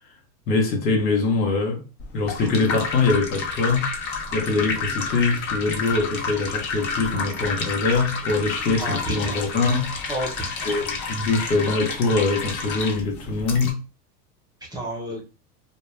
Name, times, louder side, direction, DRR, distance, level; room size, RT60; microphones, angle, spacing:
voice 1, 0.5-1.8 2.1-3.8 4.3-9.9 10.6-13.8, left 3 dB, 90° left, 1.0 m, -23 dB
sound 1, 2.0-13.7, left 4 dB, 50° left, 0.8 m, -30 dB
voice 2, 8.8-9.5 10.1-10.7 14.7-15.2, right 1 dB, 10° right, 0.6 m, -31 dB
2.2 x 2.2 x 3.0 m
hypercardioid pair, 110°, 48 cm